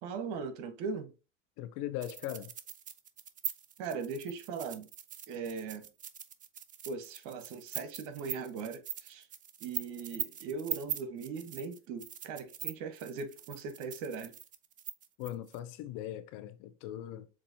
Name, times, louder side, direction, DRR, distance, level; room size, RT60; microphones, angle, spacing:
voice 1, 0.0-1.1 3.8-4.9 5.3-5.9 6.9-9.3 9.6-14.3, right 5 dB, 65° right, 1.2 m, -39 dB
voice 2, 1.6-2.5 15.2-17.3, left 12 dB, 60° left, 0.8 m, -40 dB
sound 1, 2.0-15.6, right 9 dB, 25° right, 0.4 m, -42 dB
7.3 x 2.7 x 2.6 m
supercardioid pair, 105°, 36 cm